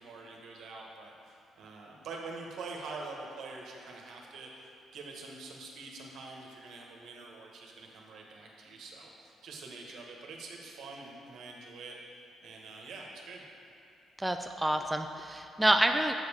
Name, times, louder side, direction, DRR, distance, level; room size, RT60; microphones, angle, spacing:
voice 1, 0.0-12.0 12.4-13.4, right 3 dB, 75° right, -1 dB, 1.2 m, -45 dB
voice 2, 14.2-16.1, right 1 dB, 10° right, 5 dB, 0.3 m, -28 dB
7.8 x 5.3 x 4.8 m, 2.8 s
cardioid pair, 90°, 0 cm